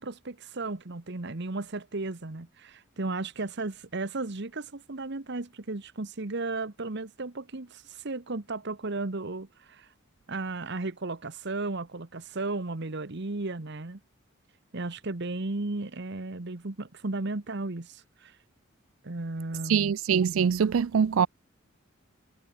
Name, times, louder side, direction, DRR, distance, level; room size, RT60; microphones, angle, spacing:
voice 1, 0.0-9.9 10.3-14.0 14.7-18.4 19.0-19.9, right 2 dB, 60° right, 1.3 m, -35 dB
voice 2, 19.7-21.3, right 7 dB, 80° right, 0.4 m, -23 dB
head